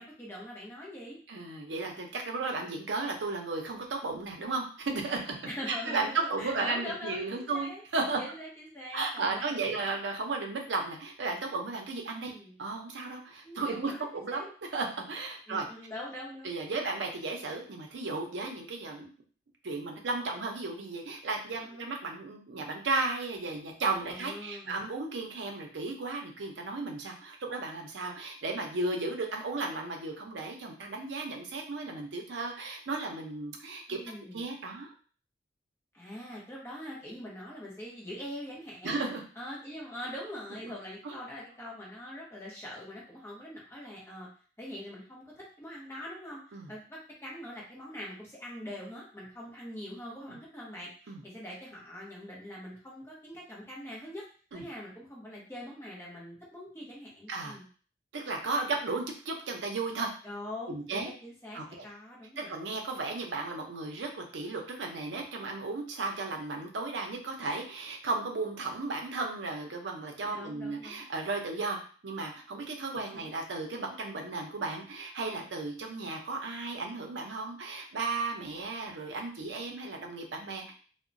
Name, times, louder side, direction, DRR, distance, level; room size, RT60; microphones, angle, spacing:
voice 1, 0.0-1.2 2.5-2.7 5.5-7.8 8.2-9.8 12.3-12.5 13.4-14.5 15.5-16.6 21.6-21.9 24.1-24.8 33.9-34.5 35.9-39.0 39.4-44.3 44.6-54.2 54.5-57.7 60.2-62.5 70.3-71.0 72.9-73.3, left 1 dB, 15° left, -4 dB, 0.7 m, -43 dB
voice 2, 1.3-5.4 5.7-8.2 8.9-12.3 12.6-14.5 14.7-15.6 16.4-19.1 19.6-34.0 34.3-34.9 38.8-39.2 41.0-41.1 46.5-46.7 51.1-51.2 54.5-54.6 57.3-57.6 58.1-60.1 60.7-61.1 61.5-61.6 62.4-80.7, right 3 dB, 85° right, 2 dB, 0.6 m, -34 dB
2.8 x 2.1 x 2.5 m, 0.41 s
head